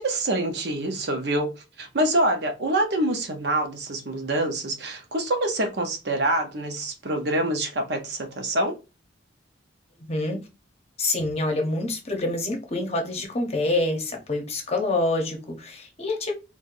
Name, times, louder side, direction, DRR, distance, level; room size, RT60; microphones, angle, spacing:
voice 1, 0.0-1.5 1.8-8.8, right 1 dB, 55° right, 0.7 m, -26 dB
voice 2, 10.0-10.4 11.0-16.3, left 2 dB, 30° left, 0.8 m, -26 dB
4.4 x 2.2 x 2.5 m
head